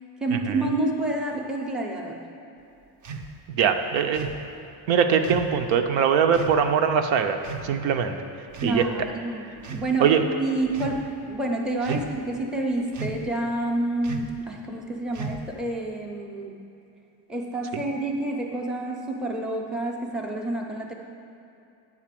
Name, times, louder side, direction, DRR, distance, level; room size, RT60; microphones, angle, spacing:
voice 1, 0.2-2.2 8.6-16.6 17.3-20.9, right 2 dB, ahead, -1 dB, 0.6 m, -28 dB
sound 1, 3.0-3.3 4.1-4.4 5.2-5.6 6.3-6.6 7.4-7.7 8.5-9.1 9.6-9.9 10.6-11.0 11.8-12.3 12.9-13.3 14.0-14.4 15.1-15.6, right 4 dB, 40° right, 0.6 m, -35 dB
voice 2, 3.5-4.3 4.9-8.2 8.6-8.9 10.0-10.2 11.9-12.0 17.7-17.8, right 7 dB, 75° right, 6 dB, 0.8 m, -22 dB
9.7 x 4.1 x 7.5 m, 2.8 s
cardioid pair, 155°, 45 cm